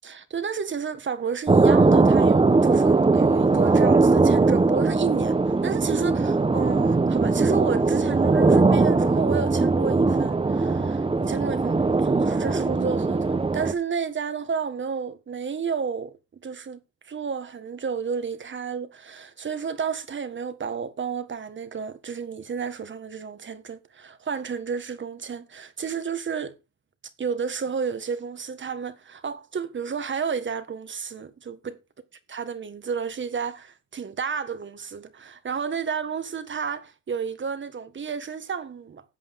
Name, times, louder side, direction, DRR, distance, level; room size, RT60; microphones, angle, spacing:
voice 1, 0.0-5.4 5.6-16.2 16.4-16.8 17.0-26.6 27.2-31.8 32.3-39.0, right 6 dB, 40° right, 1.6 m, -31 dB
sound 1, 1.5-13.7, right 3 dB, 20° right, 1.1 m, -20 dB
13.5 x 8.3 x 3.7 m
cardioid pair, 90°, 30 cm